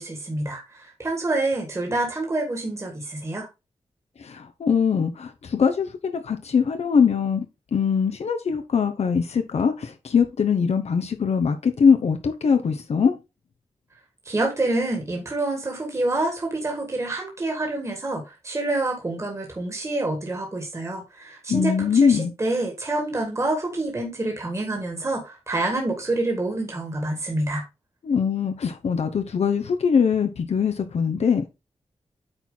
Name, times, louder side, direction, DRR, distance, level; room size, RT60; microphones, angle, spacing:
voice 1, 0.0-3.5 14.3-27.6, right 2 dB, 25° right, 1.9 m, -27 dB
voice 2, 4.2-7.4 7.7-13.1 21.5-22.3 28.0-31.5, left 6 dB, 70° left, 0.9 m, -22 dB
8.9 x 4.5 x 3.9 m
wide cardioid pair, 160°, 11 cm